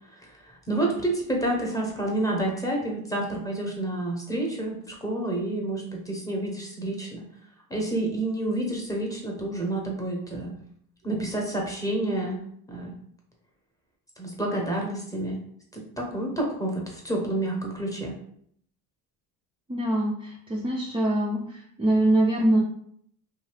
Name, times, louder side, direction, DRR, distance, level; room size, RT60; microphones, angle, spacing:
voice 1, 0.1-7.2 7.7-10.5 11.0-12.9 14.2-15.4 15.7-18.1, right 1 dB, 10° left, -2 dB, 0.8 m, -29 dB
voice 2, 19.7-22.6, right 1 dB, 15° right, -3 dB, 0.4 m, -24 dB
2.6 x 2.3 x 3.2 m, 0.66 s
cardioid pair, 105°, 41 cm